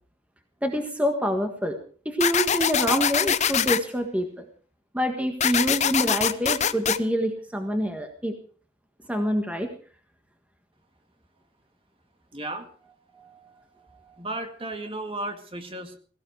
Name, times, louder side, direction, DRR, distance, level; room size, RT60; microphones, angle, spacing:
voice 1, 0.6-1.8 2.0-4.5 4.9-8.3 9.1-9.7 13.1-13.5 13.9-14.2, equal, 5° right, 5 dB, 1.6 m, -26 dB
sound 1, 2.2-3.8 5.4-7.0, left 8 dB, 35° left, 0.7 m, -23 dB
voice 2, 12.3-12.7 14.2-16.0, right 2 dB, 30° right, 7 dB, 1.9 m, -34 dB
17.0 x 16.5 x 4.7 m, 0.42 s
head